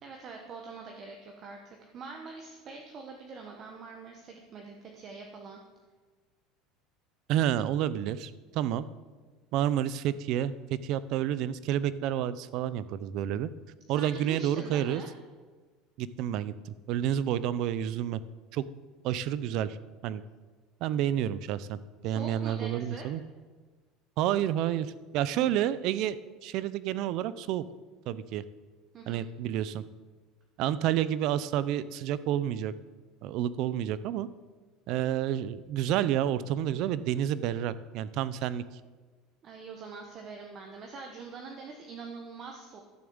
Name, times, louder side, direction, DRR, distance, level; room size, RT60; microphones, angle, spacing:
voice 1, 0.0-5.6 13.9-15.1 22.0-23.1 28.9-29.2 39.4-42.8, right 4 dB, 30° right, 2 dB, 1.2 m, -44 dB
voice 2, 7.3-8.8 9.5-13.5 13.9-15.0 16.0-18.2 18.5-18.7 19.0-19.8 20.0-20.2 20.8-23.2 24.2-27.6 28.1-28.4 29.1-29.8 30.6-32.7 33.2-34.3 34.9-38.6, right 11 dB, 45° right, 16 dB, 0.5 m, -29 dB
12.5 x 7.2 x 7.9 m, 1.4 s
cardioid pair, 175°, 0 cm